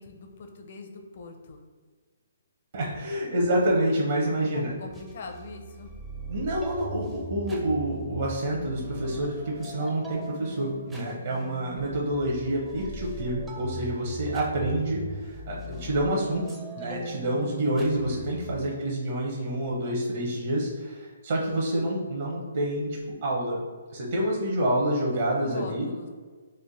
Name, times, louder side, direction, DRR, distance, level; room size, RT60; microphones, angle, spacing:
voice 1, 0.0-1.6 4.3-5.9 18.4-18.8 25.1-26.1, left 3 dB, 50° left, 4 dB, 0.5 m, -42 dB
voice 2, 2.7-4.7 6.3-16.4 16.8-23.6 23.9-25.9, right 1 dB, 50° right, -3 dB, 0.7 m, -28 dB
sound 1, 4.9-18.6, right 2 dB, 5° right, 0.4 m, -40 dB
3.2 x 2.1 x 3.9 m, 1.5 s
hypercardioid pair, 165°, 0 cm